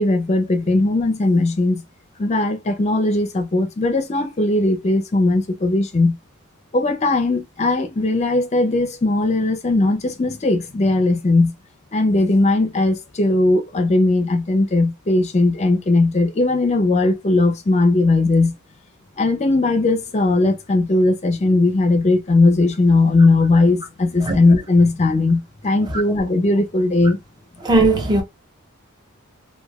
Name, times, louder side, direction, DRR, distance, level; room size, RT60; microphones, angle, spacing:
voice 1, 0.0-1.8 2.2-6.2 6.7-11.5 11.9-18.5 19.2-27.2, left 2 dB, 30° left, 0.5 m, -18 dB
voice 2, 27.6-28.2, right 2 dB, 20° right, 0.6 m, -17 dB
3.0 x 2.2 x 2.3 m
head